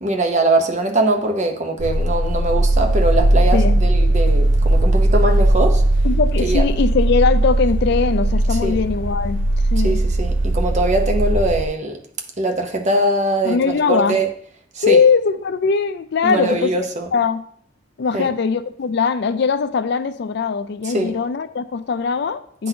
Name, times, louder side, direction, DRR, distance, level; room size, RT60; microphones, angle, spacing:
voice 1, 0.0-5.8 6.4-6.6 8.5-8.8 9.8-12.0 12.4-14.3 14.7-15.0 16.2-17.1 18.1-18.3 20.8-21.2, right 2 dB, 35° right, 4 dB, 0.8 m, -21 dB
sound 1, 1.8-11.7, right 1 dB, 70° right, 0.5 m, -18 dB
voice 2, 3.5-3.8 6.0-9.4 9.7-10.0 13.4-14.2 14.8-16.9 17.1-17.4 18.0-22.7, left 5 dB, 60° left, 12 dB, 0.4 m, -20 dB
9.3 x 4.0 x 2.7 m, 0.63 s
head